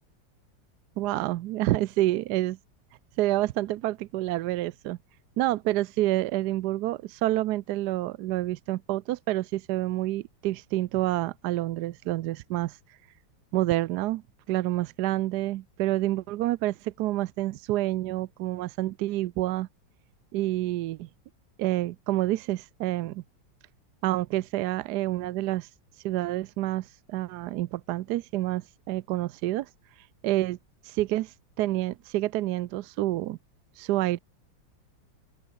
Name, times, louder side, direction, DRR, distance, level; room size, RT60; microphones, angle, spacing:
voice 1, 1.0-2.6 3.2-5.0 5.4-12.8 13.5-14.2 14.5-19.7 20.3-21.1 21.6-23.2 24.0-25.7 26.0-29.7 30.2-30.6 30.8-33.4 33.8-34.2, right 15 dB, 70° right, 1.0 m, -28 dB
open air
omnidirectional pair, 2.1 m